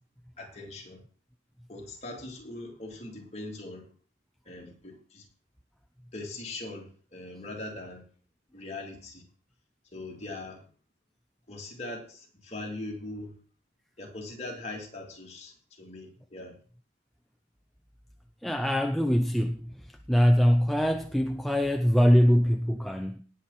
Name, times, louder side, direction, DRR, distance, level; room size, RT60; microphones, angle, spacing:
voice 1, 0.4-1.0 1.7-3.9 4.4-5.2 6.1-8.0 8.5-9.2 9.9-10.6 11.5-13.3 14.0-15.5 15.8-16.5, left 2 dB, 35° left, 3.2 m, -41 dB
voice 2, 18.4-19.7 20.1-23.2, equal, ahead, 0.5 m, -23 dB
18.0 x 7.3 x 4.3 m
head